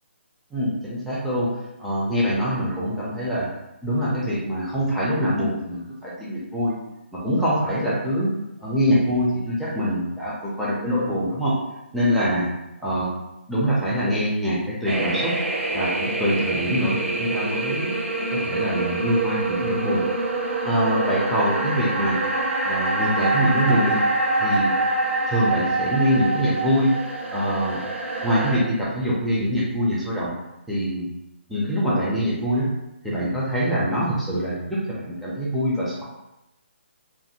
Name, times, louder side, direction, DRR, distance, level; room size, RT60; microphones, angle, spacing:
voice 1, 0.5-1.5 1.8-3.5 3.8-6.8 7.1-8.3 8.6-11.6 11.9-12.5 12.8-13.1 13.5-15.3 15.7-17.9 18.3-20.0 20.6-22.2 22.6-24.0 24.4-24.7 25.3-26.9 27.3-27.8 28.2-30.3 30.7-31.1 31.5-32.7 33.0-36.0, equal, ahead, -9 dB, 0.4 m, -24 dB
sound 1, 14.9-28.6, right 2 dB, 80° right, 0.7 m, -25 dB
2.5 x 2.5 x 2.7 m, 0.93 s
hypercardioid pair, 155°, 7 cm